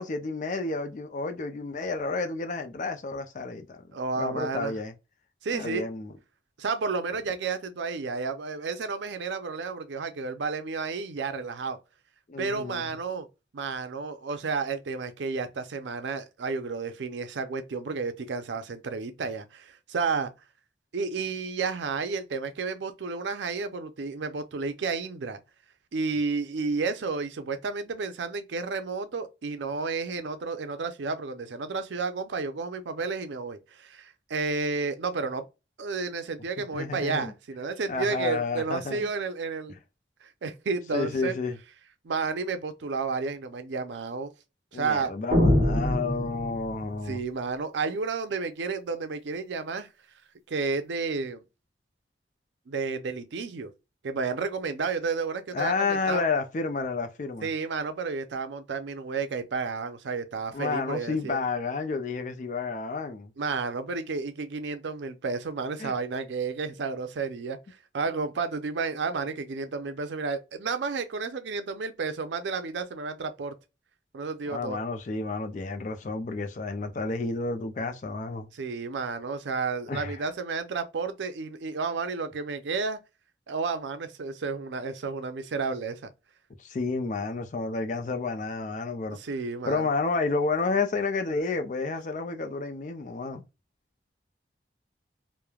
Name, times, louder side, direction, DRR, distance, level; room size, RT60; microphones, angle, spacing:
voice 1, 0.0-3.8 4.2-4.9 5.5-6.1 12.3-12.9 36.7-37.3 37.9-39.1 39.7-39.8 40.9-41.6 44.7-47.2 55.5-57.5 60.5-63.3 65.8-65.9 74.5-78.5 79.9-80.2 86.6-89.2 89.7-93.4, left 4 dB, 45° left, 0.4 m, -30 dB
voice 2, 3.9-4.7 5.4-5.8 6.6-11.8 12.4-13.3 13.5-20.3 20.9-25.4 25.9-35.5 35.8-39.8 40.2-41.4 42.0-44.3 44.7-45.1 47.1-49.9 50.5-51.4 52.7-53.7 54.0-56.2 57.4-61.4 63.4-67.6 67.9-73.6 74.1-74.8 78.5-83.0 83.5-86.1 89.1-89.9, right 4 dB, 90° right, 0.5 m, -31 dB
sound 1, 45.3-46.9, left 1 dB, 40° right, 1.1 m, -24 dB
3.1 x 2.1 x 2.3 m
head